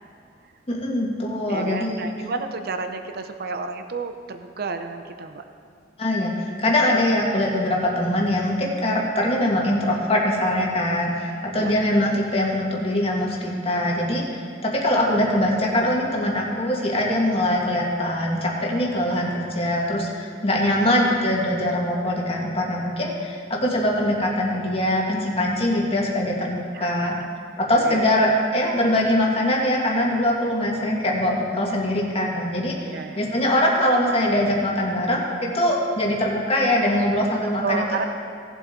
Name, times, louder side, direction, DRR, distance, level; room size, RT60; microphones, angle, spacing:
voice 1, 0.7-2.0 6.0-14.2 14.6-27.1 27.6-32.9 33.2-37.8, left 1 dB, 35° left, -2 dB, 1.9 m, -22 dB
voice 2, 1.5-5.4 11.6-11.7 26.7-27.3 27.7-28.0 32.9-33.3 37.6-38.1, right 4 dB, 55° right, 7 dB, 0.7 m, -31 dB
17.5 x 7.8 x 3.8 m, 2.3 s
head